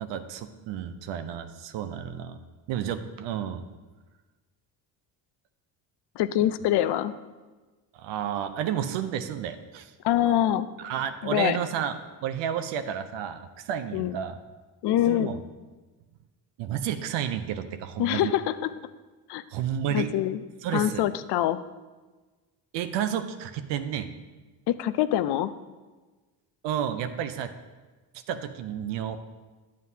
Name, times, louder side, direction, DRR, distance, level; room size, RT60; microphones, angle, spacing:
voice 1, 0.0-2.4 2.7-3.7 7.9-9.9 10.8-14.4 15.1-15.4 16.6-18.3 19.5-20.1 20.6-21.0 22.7-24.1 26.6-27.5 28.3-29.2, right 9 dB, 80° right, 9 dB, 0.6 m, -31 dB
voice 2, 6.2-7.1 10.0-10.7 11.2-11.6 13.9-14.2 14.8-15.3 18.0-18.7 19.3-19.4 19.9-20.4 20.7-21.6 24.7-25.5, left 12 dB, 70° left, 14 dB, 0.5 m, -24 dB
9.4 x 7.4 x 2.8 m, 1.3 s
cardioid pair, 90°, 43 cm